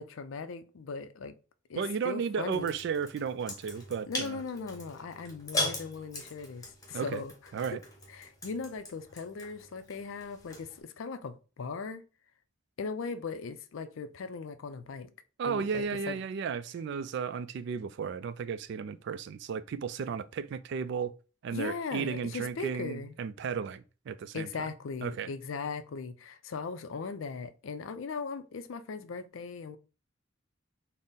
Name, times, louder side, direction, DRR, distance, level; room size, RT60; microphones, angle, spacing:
voice 1, 0.0-1.3 1.7-2.7 4.1-7.3 8.1-12.0 12.8-15.1 15.4-16.2 21.5-23.1 24.3-29.8, left 4 dB, 85° left, 0.4 m, -38 dB
voice 2, 1.8-4.4 6.9-7.2 7.5-7.8 15.4-21.1 21.4-24.7 25.0-25.3, right 6 dB, 60° right, 0.3 m, -34 dB
sound 1, 2.5-10.8, left 1 dB, 20° left, 1.0 m, -40 dB
4.0 x 2.0 x 3.6 m
head